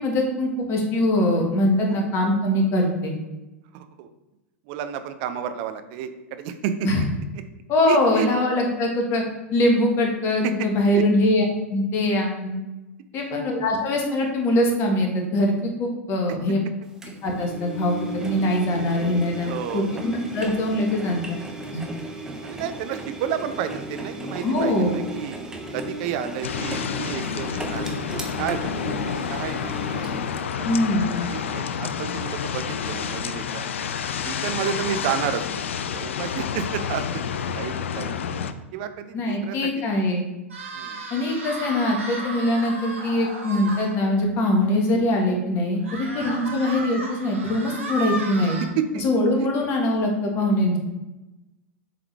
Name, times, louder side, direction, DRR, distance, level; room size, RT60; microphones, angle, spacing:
voice 1, 0.0-3.2 6.8-7.0 7.7-9.2 9.5-12.6 13.1-16.6 17.2-21.4 21.7-21.8 24.4-24.9 30.6-31.1 39.1-40.2 41.1-48.6 49.0-50.8, left 1 dB, 35° left, 1 dB, 1.4 m, -22 dB
voice 2, 3.7-4.1 4.7-7.1 7.9-8.3 10.4-11.0 13.2-13.4 19.4-20.0 22.4-25.4 25.7-29.9 30.4-33.6 34.2-35.4 35.8-38.2 38.7-39.8 40.7-41.0 47.6-47.8 48.4-49.0 49.4-49.5, right 8 dB, 45° right, 9 dB, 0.5 m, -31 dB
Engine, 17.0-30.4, right 1 dB, 10° right, 0.8 m, -35 dB
sound 1, 26.4-38.5, left 7 dB, 65° left, 0.4 m, -29 dB
sound 2, 40.5-43.9 44.4-44.5 44.8-44.9 45.8-48.7, right 2 dB, 70° right, 1.2 m, -34 dB
7.5 x 3.8 x 3.3 m, 1.0 s
figure-of-eight pair, 90°, 7 cm